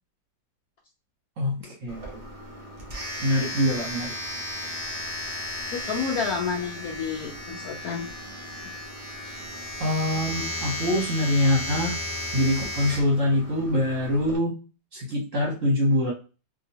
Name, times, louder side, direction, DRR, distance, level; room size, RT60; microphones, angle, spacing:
voice 1, 1.4-2.2 3.2-4.1 9.8-12.0 12.3-14.5 14.9-16.1, left 1 dB, 50° right, -2 dB, 1.0 m, -24 dB
Domestic sounds home sounds, 1.9-14.3, left 1 dB, 35° right, 0.5 m, -35 dB
voice 2, 5.7-8.1, left 5 dB, 70° left, 0 dB, 0.9 m, -30 dB
2.9 x 2.7 x 2.7 m, 0.32 s
omnidirectional pair, 2.0 m